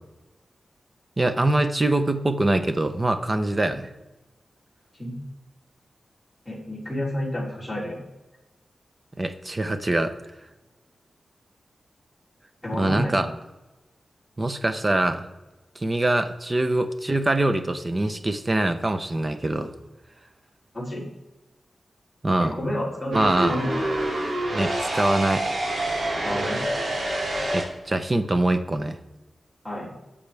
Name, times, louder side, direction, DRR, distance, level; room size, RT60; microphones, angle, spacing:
voice 1, 1.2-3.9 9.2-10.1 12.7-13.3 14.4-15.3 15.8-19.7 22.2-22.6 23.1-23.6 24.5-25.4 27.5-29.0, right 1 dB, 20° right, 8 dB, 0.7 m, -24 dB
voice 2, 6.4-8.0 12.6-13.2 14.8-14.9 20.7-21.0 22.4-23.2 23.5-23.7 26.2-26.6 29.6-29.9, left 1 dB, ahead, -6 dB, 3.3 m, -30 dB
sound 1, 23.1-27.6, right 1 dB, 55° right, 2.7 m, -27 dB
17.5 x 7.1 x 3.4 m, 1.1 s
wide cardioid pair, 160°, 0 cm